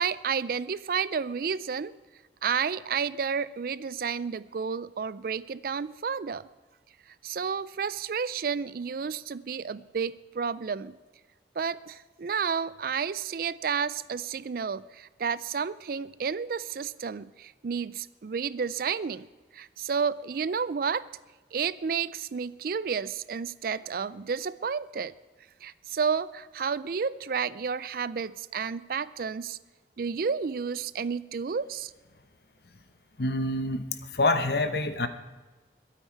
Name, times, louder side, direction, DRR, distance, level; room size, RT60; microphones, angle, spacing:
voice 1, 0.0-1.9 2.4-6.5 7.2-11.0 11.6-19.3 19.5-21.1 21.5-25.1 25.6-29.6 30.0-31.9, right 6 dB, 55° right, 18 dB, 0.4 m, -31 dB
voice 2, 33.2-33.9 34.1-35.1, left 2 dB, 60° left, 10 dB, 1.0 m, -26 dB
22.0 x 9.0 x 4.6 m, 1.3 s
head